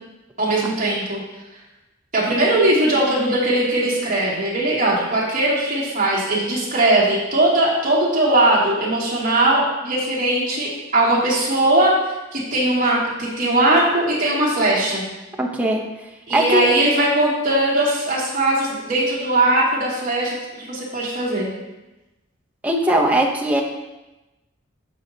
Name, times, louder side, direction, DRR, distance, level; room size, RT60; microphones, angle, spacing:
voice 1, 0.4-1.2 2.1-11.9 12.3-15.0 16.3-21.5, right 1 dB, 40° right, -7 dB, 2.7 m, -19 dB
voice 2, 15.4-15.8 16.3-16.7 22.6-23.6, right 1 dB, 10° right, -1 dB, 0.9 m, -19 dB
14.5 x 5.0 x 2.8 m, 1.0 s
head